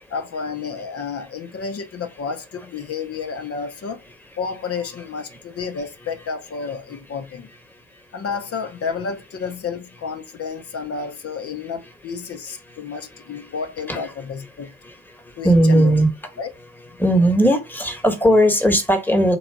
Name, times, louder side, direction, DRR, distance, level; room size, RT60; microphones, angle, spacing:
voice 1, 0.1-4.0 4.4-7.5 8.1-14.7 15.4-15.9 16.4-16.5, left 5 dB, 50° left, 0.7 m, -31 dB
voice 2, 15.4-16.1 17.0-19.4, equal, 5° left, 1.2 m, -17 dB
3.9 x 2.7 x 4.6 m
cardioid pair, 90°, 30 cm